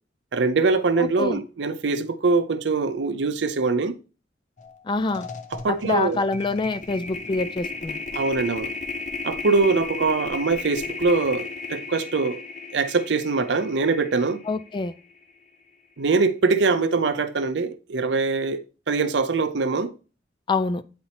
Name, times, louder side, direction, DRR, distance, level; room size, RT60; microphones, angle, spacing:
voice 1, 0.3-4.0 5.5-6.2 8.1-8.7 9.2-12.4 12.7-14.4 16.0-18.6 18.9-19.9, right 4 dB, 75° right, 0.6 m, -23 dB
voice 2, 1.0-1.4 4.8-5.3 5.7-8.0 14.5-14.9 20.5-20.8, left 3 dB, 25° left, 0.3 m, -26 dB
sound 1, 4.6-4.8 5.1-15.3, left 3 dB, 40° left, 0.7 m, -35 dB
9.4 x 4.2 x 2.9 m
head